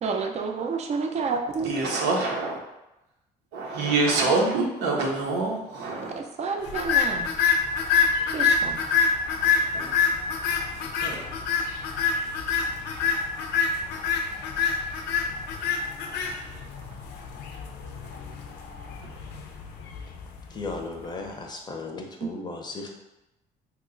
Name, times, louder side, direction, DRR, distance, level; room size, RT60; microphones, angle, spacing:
voice 1, 0.0-1.7 6.0-7.3 8.3-8.8 22.2-22.3, right 5 dB, 40° right, 4 dB, 0.5 m, -29 dB
voice 2, 1.7-2.6 3.5-6.2 9.7-9.9 11.0-11.2, right 3 dB, 85° right, -1 dB, 0.8 m, -26 dB
sound 1, 6.7-21.0, left 5 dB, 80° left, 0.5 m, -26 dB
voice 3, 20.5-22.9, left 3 dB, 25° left, 1 dB, 0.5 m, -35 dB
2.9 x 2.2 x 3.7 m, 0.94 s
cardioid pair, 110°, 17 cm